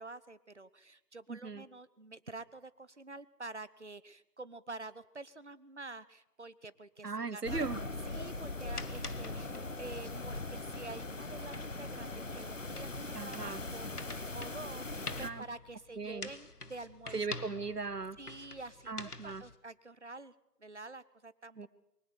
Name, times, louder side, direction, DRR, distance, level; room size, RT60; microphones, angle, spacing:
voice 1, 0.0-7.7 8.0-17.3 18.2-20.3 20.6-21.6, right 2 dB, 45° right, 16 dB, 0.8 m, -48 dB
voice 2, 1.3-1.6 7.0-7.8 13.2-13.6 15.2-15.4 16.0-16.3 17.1-18.2 18.9-19.4 21.6-21.7, right 4 dB, 70° right, 17 dB, 1.1 m, -38 dB
sound 1, 7.4-15.3, left 2 dB, 50° left, 1.3 m, -40 dB
sound 2, 8.1-19.6, left 3 dB, 65° left, 1.5 m, -49 dB
23.0 x 16.5 x 6.8 m, 0.90 s
figure-of-eight pair, 170°, 49 cm